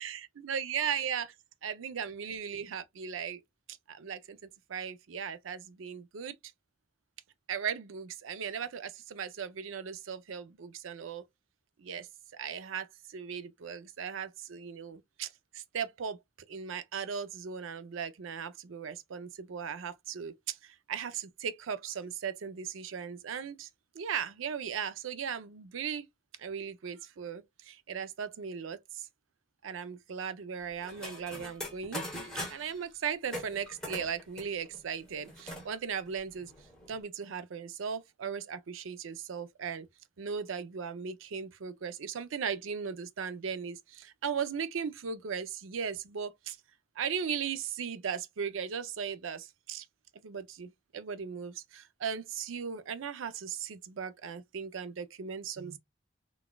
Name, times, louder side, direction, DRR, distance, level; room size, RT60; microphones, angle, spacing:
voice 1, 0.0-1.3 1.6-3.4 3.9-4.4 4.7-6.4 7.5-11.2 11.8-12.1 12.3-16.2 16.5-23.7 23.9-26.1 26.4-29.1 29.6-32.0 32.5-36.5 36.9-39.9 40.2-46.6 47.0-49.9 50.2-55.8, right 7 dB, 90° right, 0.5 m, -37 dB
sound 1, 30.8-32.8 33.3-35.7 36.1-36.2 36.4-37.0, left 1 dB, 5° left, 1.0 m, -41 dB
3.9 x 2.3 x 2.2 m
head